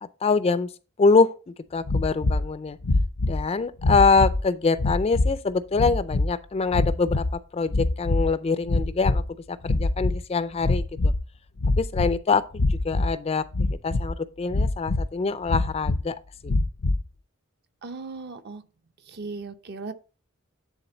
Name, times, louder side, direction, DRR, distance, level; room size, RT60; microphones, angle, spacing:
voice 1, 0.0-0.7 1.0-2.8 3.3-7.2 7.5-9.2 9.5-11.1 11.8-13.4 13.8-16.2 16.4-16.5, left 4 dB, 30° left, 0.4 m, -24 dB
sound 1, 1.9-2.5 2.8-3.4 3.8-4.4 4.8-5.4 5.7-6.3 6.7-7.4 7.7-8.3 8.6-9.3 9.6-10.2 10.6-11.2 11.6-12.2 12.5-13.1 13.5-14.1 14.5-15.1 15.5-16.0 16.4-17.0, left 2 dB, 75° left, 0.6 m, -24 dB
voice 2, 17.8-18.6 19.1-19.9, right 3 dB, 50° right, 0.7 m, -37 dB
10.0 x 3.6 x 3.9 m
head